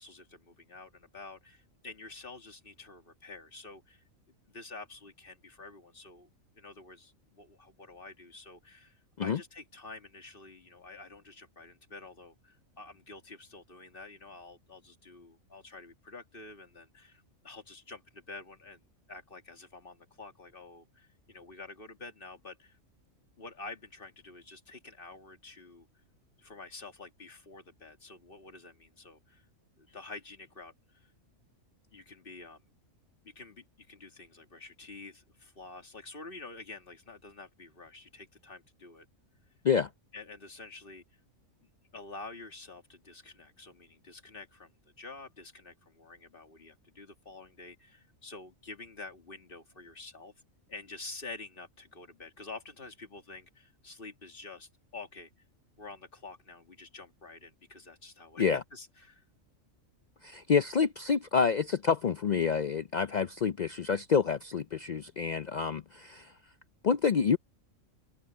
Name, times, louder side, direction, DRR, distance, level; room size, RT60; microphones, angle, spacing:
voice 1, 0.0-4.0 4.5-6.3 6.6-18.8 19.1-22.8 23.4-25.9 26.4-29.5 29.8-31.1 31.9-32.6 33.2-39.1 40.1-41.0 41.6-50.3 50.7-55.3 55.8-59.2, left 3 dB, 40° left, 2.5 m, -48 dB
voice 2, 60.2-66.3 66.8-67.4, left 6 dB, 70° left, 0.4 m, -28 dB
omnidirectional pair, 1.4 m